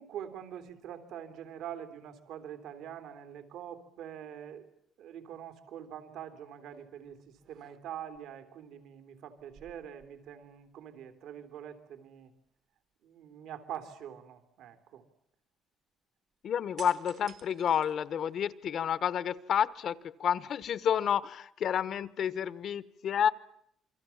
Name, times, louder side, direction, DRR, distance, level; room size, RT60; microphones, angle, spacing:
voice 1, 0.0-4.7 5.0-12.3 13.0-15.0, right 9 dB, 80° right, 9 dB, 3.4 m, -44 dB
sound 1, 6.7-7.0 7.4-8.2 9.4-10.7 11.0-11.1 16.8-18.6 19.1-20.0, right 8 dB, 55° right, 1.5 m, -55 dB
voice 2, 16.4-23.3, left 8 dB, 50° left, 17 dB, 1.0 m, -30 dB
28.0 x 23.5 x 7.2 m, 0.73 s
cardioid pair, 170°, 0 cm